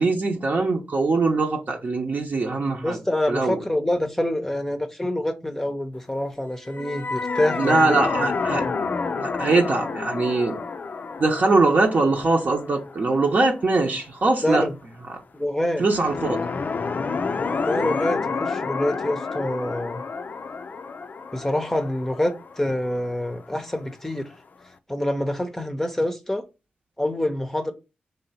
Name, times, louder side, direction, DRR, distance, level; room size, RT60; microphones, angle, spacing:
voice 1, 0.0-3.0 3.3-3.6 7.6-8.6 9.2-10.6 11.2-14.7 15.8-16.4, right 3 dB, 50° right, 0.8 m, -22 dB
voice 2, 2.8-8.0 8.6-8.7 14.4-14.7 15.3-15.9 17.6-20.0 21.3-24.3 24.9-26.4 27.0-27.7, left 1 dB, 10° left, 0.7 m, -26 dB
sound 1, 6.6-13.9 15.8-23.6, left 4 dB, 50° left, 0.4 m, -30 dB
3.3 x 2.8 x 4.1 m
cardioid pair, 50°, 4 cm